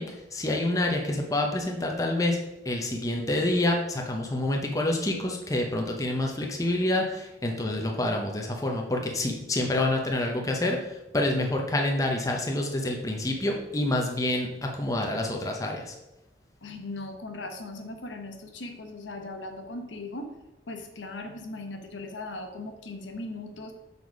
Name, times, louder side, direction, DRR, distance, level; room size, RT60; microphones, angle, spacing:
voice 1, 0.0-2.4 2.6-15.9, left 1 dB, 20° left, 1 dB, 0.7 m, -27 dB
voice 2, 16.6-20.3 20.7-23.7, left 2 dB, 85° left, 5 dB, 0.9 m, -38 dB
6.8 x 4.1 x 4.6 m, 0.95 s
head